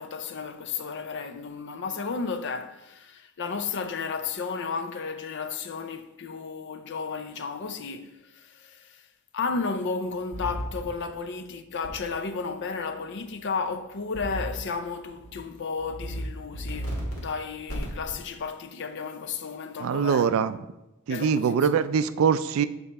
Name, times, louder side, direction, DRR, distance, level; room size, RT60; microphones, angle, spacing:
voice 1, 0.0-9.1 9.3-20.4 21.1-21.8, left 5 dB, 55° left, 0.5 m, -33 dB
sound 1, 10.3-10.8 11.8-11.9 14.1-14.6 15.0-15.3 15.8-16.2 16.5-17.2 17.7-18.1, right 1 dB, 70° left, 1.7 m, -33 dB
voice 2, 19.8-20.6 21.1-22.7, right 6 dB, 65° right, 0.3 m, -23 dB
6.9 x 4.4 x 4.2 m
head